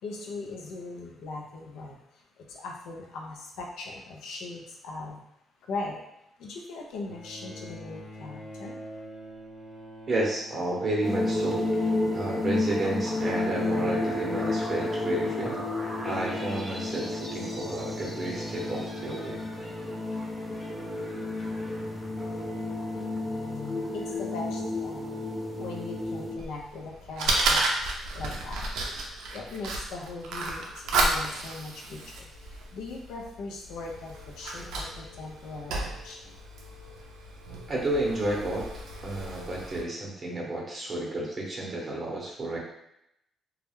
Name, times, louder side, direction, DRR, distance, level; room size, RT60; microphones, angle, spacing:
voice 1, 0.0-5.2 5.6-6.0 6.4-8.9 23.8-25.2 25.6-28.6 29.3-36.4, left 3 dB, 85° left, 0 dB, 0.5 m, -40 dB
Bowed string instrument, 7.1-12.5 13.6-13.7, equal, 45° left, 0.8 m, -45 dB
voice 2, 10.1-11.6 12.1-15.6 16.0-19.4 37.7-38.7 39.0-42.6, right 2 dB, 40° right, -3 dB, 0.7 m, -31 dB
sound 1, 11.0-26.3, left 2 dB, ahead, 0.7 m, -31 dB
Fire, 26.4-39.8, right 2 dB, 90° right, 0.4 m, -32 dB
2.3 x 2.1 x 3.0 m, 0.80 s
cardioid pair, 90°, 0 cm